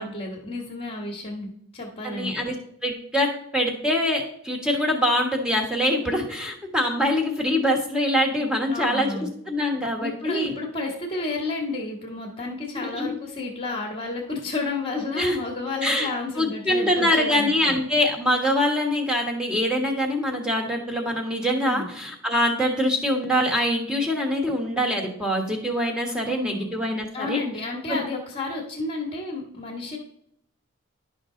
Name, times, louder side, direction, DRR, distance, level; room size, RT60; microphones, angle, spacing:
voice 1, 0.0-2.4 8.7-9.3 10.0-17.8 21.6-21.9 26.3-26.7 27.1-30.0, left 2 dB, 30° left, -4 dB, 1.2 m, -31 dB
voice 2, 2.0-2.5 2.8-3.3 3.5-10.5 12.7-13.1 15.2-15.4 15.8-16.1 16.4-27.4 27.9-28.0, left 1 dB, 5° right, 0 dB, 1.3 m, -24 dB
11.0 x 5.5 x 3.8 m, 0.70 s
head